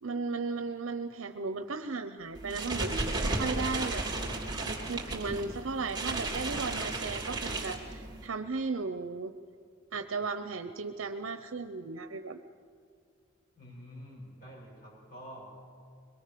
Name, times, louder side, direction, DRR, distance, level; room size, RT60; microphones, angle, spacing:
voice 1, 0.0-4.0 4.7-9.3 9.9-12.4, right 4 dB, 70° right, 8 dB, 0.8 m, -35 dB
sound 1, 2.3-8.3, right 2 dB, 20° right, 3.2 m, -34 dB
voice 2, 13.5-15.7, equal, 45° left, -4 dB, 7.4 m, -48 dB
23.0 x 22.0 x 6.8 m, 2.2 s
head